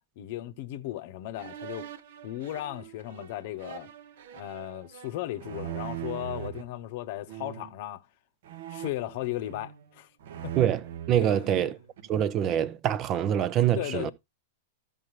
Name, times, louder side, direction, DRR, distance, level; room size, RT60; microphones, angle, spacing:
voice 1, 0.2-1.9 2.2-3.9 4.3-8.0 8.7-10.1 10.4-10.5 11.2-11.7 13.7-14.1, left 14 dB, 50° left, 0.9 m, -36 dB
sound 1, 1.4-6.6 7.3-7.8 8.4-9.9 10.2-12.2, right 11 dB, 60° right, 0.9 m, -41 dB
voice 2, 10.6-11.8 12.1-14.1, right 10 dB, 35° right, 0.6 m, -25 dB
14.5 x 5.3 x 3.0 m
figure-of-eight pair, 100°, 0 cm